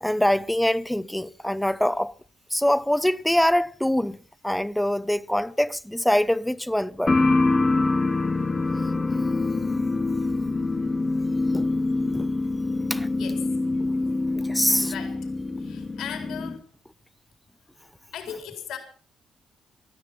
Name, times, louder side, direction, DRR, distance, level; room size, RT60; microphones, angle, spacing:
voice 1, 0.0-2.1 2.5-4.2 4.4-7.2 11.5-11.7 12.1-12.3 12.9-13.1 13.8-13.9 14.4-14.9, left 1 dB, 5° left, 0.7 m, -24 dB
sound 1, 7.1-16.6, left 3 dB, 25° left, 1.5 m, -25 dB
voice 2, 13.1-13.6 14.8-15.2 15.6-16.7 18.1-18.8, left 8 dB, 80° left, 4.2 m, -37 dB
19.5 x 13.0 x 5.6 m
cardioid pair, 90°, 0 cm